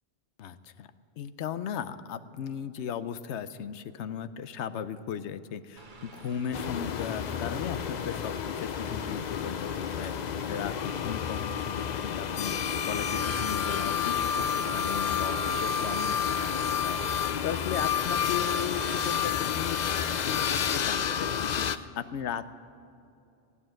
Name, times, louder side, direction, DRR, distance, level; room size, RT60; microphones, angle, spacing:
voice 1, 0.4-0.9 1.2-10.1 10.5-12.5 12.8-17.0 17.4-22.5, left 8 dB, 90° left, 12 dB, 1.0 m, -37 dB
Mechanical fan, 5.8-21.1, right 3 dB, 45° right, 1.2 m, -49 dB
sound 1, 6.5-21.8, left 7 dB, 55° left, 0.5 m, -30 dB
17.5 x 9.6 x 7.7 m, 2.6 s
omnidirectional pair, 1.1 m